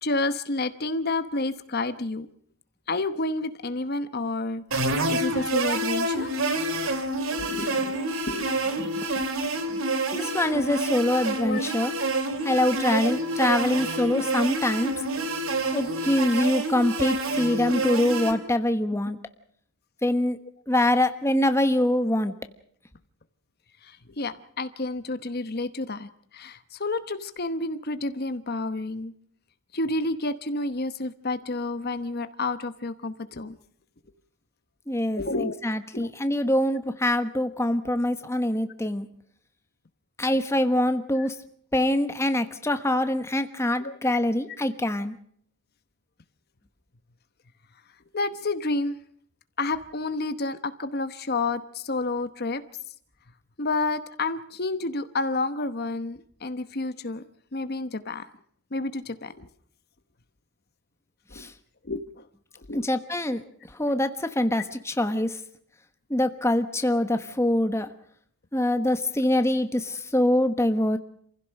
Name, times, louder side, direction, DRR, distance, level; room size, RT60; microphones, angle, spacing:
voice 1, 0.0-2.3 2.9-6.3 7.4-8.0 8.3-8.5 11.4-11.6 13.7-14.0 23.8-29.1 29.7-33.5 35.2-35.6 35.9-36.1 41.2-41.3 43.8-44.0 48.1-49.0 49.6-52.6 53.6-57.2 57.5-58.2 58.7-59.5 61.3-61.5 61.8-62.2 62.7-62.8, left 2 dB, 45° left, 11 dB, 1.0 m, -30 dB
sound 1, 4.7-18.3, right 2 dB, 65° right, 2.6 m, -28 dB
voice 2, 8.8-9.1 9.7-9.8 10.1-11.9 12.4-14.9 15.7-19.2 20.0-20.4 20.7-22.3 34.9-35.2 35.6-39.1 40.2-41.4 41.7-45.2 61.3-61.5 62.7-63.4 63.7-65.4 66.1-67.9 68.5-71.0, left 1 dB, 10° left, 8 dB, 1.1 m, -24 dB
27.5 x 16.0 x 6.5 m, 0.63 s
head